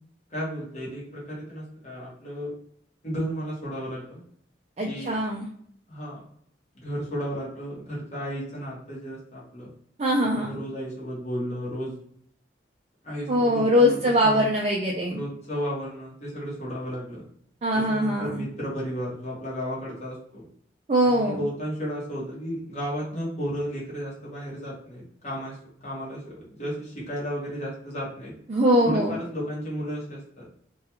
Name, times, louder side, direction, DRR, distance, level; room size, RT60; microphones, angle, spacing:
voice 1, 0.3-2.5 3.0-4.2 4.8-5.2 5.9-6.2 6.7-9.7 10.3-11.9 13.0-14.5 15.1-17.2 17.7-20.4 21.0-28.3 28.8-30.5, equal, 35° left, -6 dB, 0.9 m, -33 dB
voice 2, 4.8-5.5 10.0-10.5 13.3-15.2 17.6-18.4 20.9-21.4 28.5-29.1, equal, 35° right, -3 dB, 0.3 m, -22 dB
2.4 x 2.3 x 2.8 m, 0.65 s
head